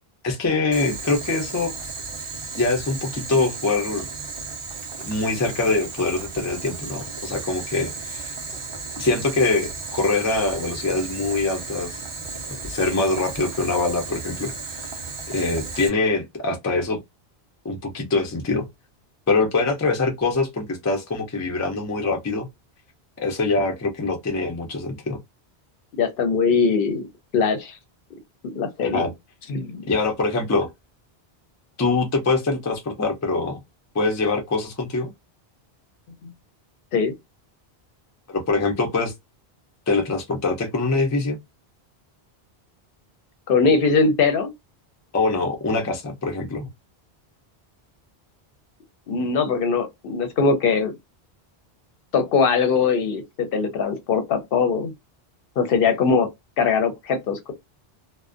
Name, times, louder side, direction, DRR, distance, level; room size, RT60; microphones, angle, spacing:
voice 1, 0.2-1.7 2.6-4.1 5.0-8.3 9.0-12.0 12.6-14.8 15.3-17.0 17.6-18.7 19.3-22.5 23.2-25.2 28.9-29.1 29.9-30.7 31.8-33.6 33.9-35.1 38.3-39.1 39.9-41.4 45.1-46.7, left 3 dB, 25° left, 0.3 m, -24 dB
Boiling, 0.7-15.9, right 4 dB, 45° right, 0.4 m, -35 dB
voice 2, 26.0-27.1 27.3-27.8 28.5-29.1 29.5-29.9 36.9-37.1 43.5-44.5 49.1-50.9 52.1-54.9 55.6-56.3 56.6-57.5, left 5 dB, 65° left, 0.7 m, -21 dB
2.4 x 2.1 x 2.4 m
omnidirectional pair, 1.1 m